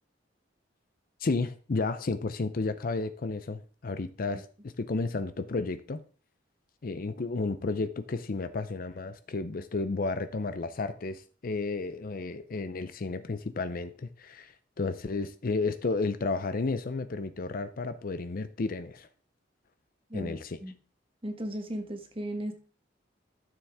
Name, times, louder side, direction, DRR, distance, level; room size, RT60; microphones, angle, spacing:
voice 1, 1.2-4.4 4.8-6.0 6.8-19.1 20.1-20.5, left 3 dB, 50° left, 0.5 m, -32 dB
voice 2, 20.1-20.7 21.2-22.5, right 1 dB, 30° right, 1.4 m, -36 dB
12.5 x 7.1 x 3.5 m
head